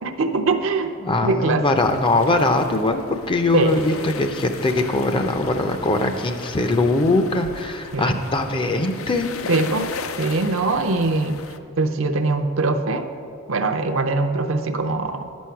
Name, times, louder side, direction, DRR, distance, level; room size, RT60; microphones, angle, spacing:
voice 1, 0.0-1.0 1.2-1.6 3.5-4.0 7.9-8.2 9.5-9.9 10.2-11.4 11.8-13.1 13.5-15.3, right 3 dB, 65° right, 6 dB, 0.6 m, -22 dB
voice 2, 1.0-9.3, left 2 dB, 25° left, 7 dB, 0.5 m, -21 dB
sound 1, 1.8-11.6, left 5 dB, 70° left, 0.5 m, -37 dB
9.9 x 6.3 x 5.7 m, 2.3 s
head